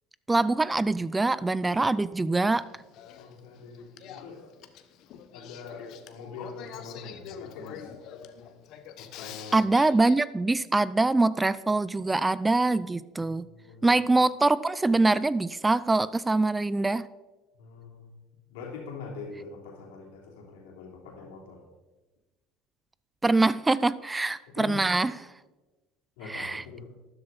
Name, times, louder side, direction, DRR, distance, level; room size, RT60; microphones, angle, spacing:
voice 1, 0.3-2.6 9.5-13.5 13.8-17.1 23.2-25.2 26.3-26.6, right 2 dB, 15° right, 18 dB, 0.4 m, -24 dB
Male speech man speaking / Female speech woman speaking / Conversation, 2.5-10.1, left 9 dB, 60° left, 1.1 m, -45 dB
voice 2, 3.2-4.5 5.3-7.9 8.9-9.7 13.2-14.0 17.6-18.1 18.5-21.6 24.5-24.9 26.2-26.9, left 4 dB, 80° left, 0 dB, 3.2 m, -43 dB
12.5 x 11.0 x 4.1 m, 1.2 s
hypercardioid pair, 80°, 0 cm